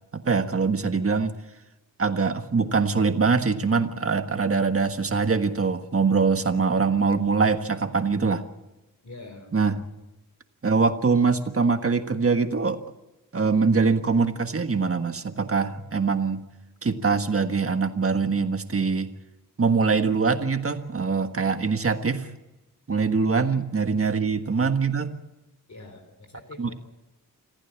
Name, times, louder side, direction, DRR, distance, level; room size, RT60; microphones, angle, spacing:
voice 1, 0.1-1.3 2.0-8.4 9.5-9.8 10.6-12.8 13.3-16.4 16.8-19.1 19.6-22.3 22.9-25.1 26.6-26.7, right 4 dB, 40° right, 8 dB, 1.5 m, -23 dB
voice 2, 9.0-9.6 24.2-24.3 25.7-26.7, left 2 dB, 55° left, 5 dB, 4.0 m, -44 dB
25.5 x 15.5 x 7.3 m, 1.0 s
wide cardioid pair, 110°, 34 cm